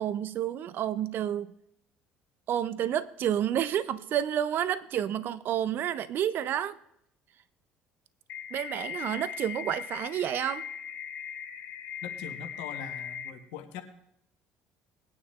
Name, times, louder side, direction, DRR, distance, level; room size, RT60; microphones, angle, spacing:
voice 1, 0.0-1.5 2.5-6.8 8.5-10.6, right 10 dB, 60° right, 0.5 m, -30 dB
sound 1, 8.3-13.3, left 8 dB, 65° left, 2.4 m, -39 dB
voice 2, 12.0-13.8, left 7 dB, 80° left, 1.2 m, -42 dB
20.5 x 9.5 x 2.5 m
supercardioid pair, 75°, 4 cm